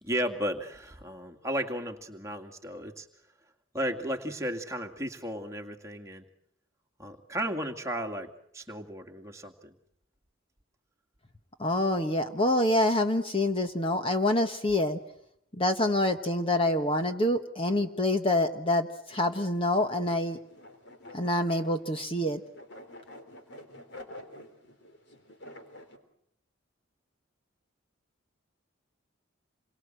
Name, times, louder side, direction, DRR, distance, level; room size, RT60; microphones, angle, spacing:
voice 1, 0.0-3.1 3.7-6.2 7.0-9.7, equal, 15° right, 2 dB, 2.2 m, -34 dB
voice 2, 11.6-15.0 15.5-20.4 21.1-22.4, left 1 dB, 25° left, 6 dB, 1.3 m, -26 dB
sound 1, 19.1-26.0, left 1 dB, 55° left, 3.7 m, -49 dB
28.0 x 23.5 x 7.8 m, 0.73 s
head